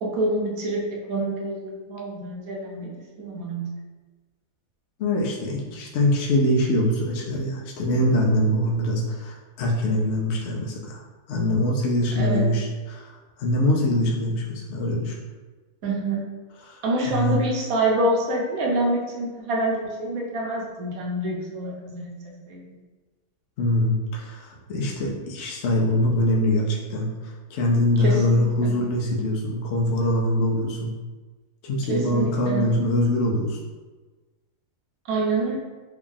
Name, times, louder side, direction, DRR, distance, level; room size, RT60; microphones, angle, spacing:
voice 1, 0.0-2.9 3.2-3.6 12.2-12.5 15.8-16.2 16.8-22.6 28.0-28.8 31.9-32.7 35.1-35.6, right 2 dB, 65° right, -1 dB, 1.2 m, -26 dB
voice 2, 5.0-11.0 11.3-15.2 16.6-16.8 17.1-17.4 23.6-30.9 31.6-33.6, left 1 dB, 60° left, -2 dB, 0.7 m, -23 dB
3.5 x 2.3 x 3.7 m, 1.3 s
omnidirectional pair, 1.7 m